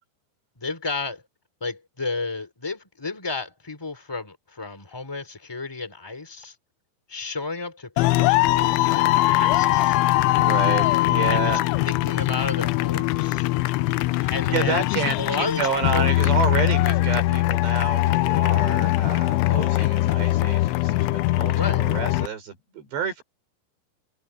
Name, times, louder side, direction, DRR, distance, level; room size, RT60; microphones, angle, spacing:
voice 1, 0.6-1.2 1.6-6.5 7.1-10.0 11.3-13.5 14.3-14.8 15.1-16.1 21.5-21.8, left 3 dB, 5° left, 2.3 m, -32 dB
sound 1, 8.0-22.3, left 17 dB, 90° left, 3.1 m, -21 dB
voice 2, 10.3-11.6 13.6-23.2, right 5 dB, 65° right, 7.7 m, -29 dB
omnidirectional pair, 5.4 m